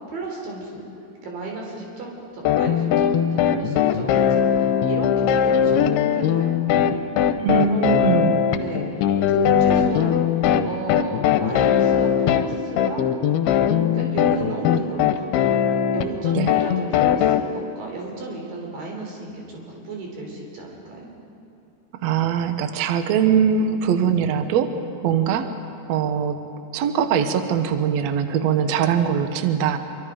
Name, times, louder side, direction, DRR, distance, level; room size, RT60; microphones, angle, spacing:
voice 1, 0.1-0.8 1.2-6.6 7.7-8.1 8.6-13.1 13.9-21.1, right 2 dB, 60° right, -1 dB, 5.3 m, -34 dB
sound 1, 2.5-17.4, left 9 dB, 80° left, 2.7 m, -20 dB
voice 2, 7.4-8.4 16.3-16.5 22.0-24.7 25.0-25.5 25.9-26.4 26.7-29.8, right 7 dB, 90° right, 8 dB, 1.5 m, -21 dB
26.5 x 23.5 x 5.1 m, 2.6 s
omnidirectional pair, 4.6 m